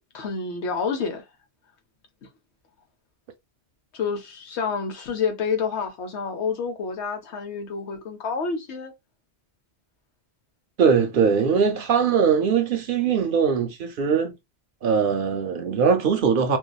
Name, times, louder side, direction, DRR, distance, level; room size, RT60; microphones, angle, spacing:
voice 1, 0.1-1.2 3.9-8.9, left 5 dB, 85° left, 1.1 m, -28 dB
voice 2, 10.8-14.3 14.8-16.6, right 6 dB, 60° right, 0.6 m, -21 dB
2.8 x 2.2 x 2.2 m
omnidirectional pair, 1.1 m